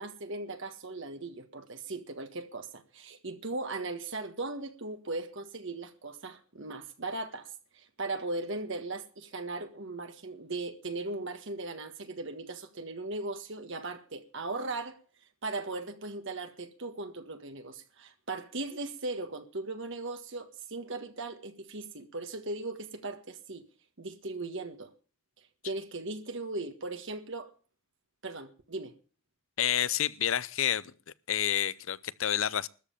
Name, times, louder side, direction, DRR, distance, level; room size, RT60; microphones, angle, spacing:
voice 1, 0.0-7.5 7.7-15.0 15.4-23.6 24.0-24.9 25.6-27.5 28.2-28.9, right 2 dB, 60° right, 1.6 m, -38 dB
voice 2, 29.6-30.9 31.3-32.7, left 10 dB, 70° left, 0.6 m, -29 dB
13.5 x 7.6 x 8.8 m
head